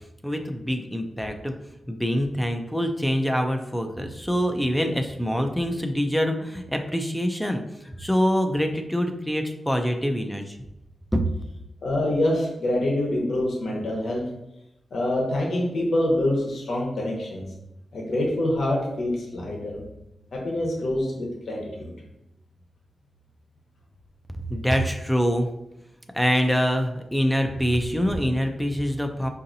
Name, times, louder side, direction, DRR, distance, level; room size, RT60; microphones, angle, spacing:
voice 1, 0.2-1.5 1.9-7.6 8.0-10.6 11.1-11.2 24.5-25.5 26.1-29.3, equal, 5° left, 5 dB, 0.4 m, -25 dB
voice 2, 11.8-14.2 14.9-17.5 17.9-19.8 20.3-21.9, left 1 dB, 75° left, -2 dB, 0.9 m, -25 dB
4.8 x 2.7 x 2.6 m, 0.87 s
wide cardioid pair, 90°, 0 cm